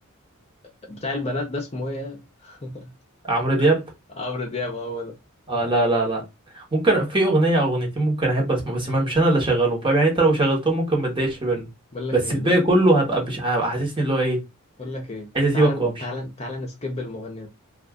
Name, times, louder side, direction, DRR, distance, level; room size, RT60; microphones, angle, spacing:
voice 1, 0.9-2.9 3.6-3.7 4.2-5.2 11.9-12.6 14.8-15.3 15.5-17.5, left 2 dB, 30° left, 0.6 m, -31 dB
voice 2, 3.2-3.8 5.5-6.2 6.5-11.7 12.1-14.4 15.3-16.0, right 2 dB, 25° right, 1.1 m, -21 dB
2.6 x 2.4 x 3.5 m
head